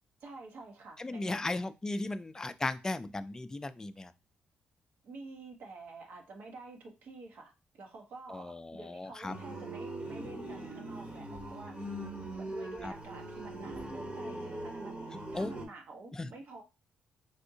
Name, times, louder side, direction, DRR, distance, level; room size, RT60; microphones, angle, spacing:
voice 1, 0.2-1.6 5.0-12.0 12.4-16.6, right 3 dB, 70° right, 1 dB, 0.9 m, -49 dB
voice 2, 1.0-4.1 8.3-9.3 12.8-12.9 15.3-15.5 16.1-16.3, left 2 dB, 20° left, 11 dB, 0.3 m, -36 dB
sound 1, 9.3-15.6, right 1 dB, 40° right, 1.0 m, -41 dB
3.4 x 2.6 x 2.7 m, 0.27 s
supercardioid pair, 65°, 3 cm